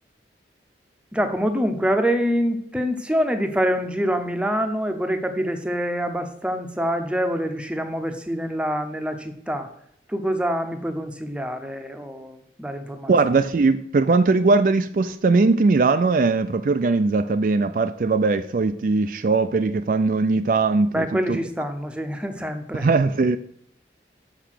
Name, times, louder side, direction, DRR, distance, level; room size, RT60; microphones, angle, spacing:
voice 1, 1.1-9.7 10.1-13.1 20.9-22.9, equal, 5° right, 0.7 m, -25 dB
voice 2, 13.1-21.4 22.7-23.4, right 3 dB, 50° right, 0.3 m, -20 dB
6.8 x 5.9 x 6.4 m
head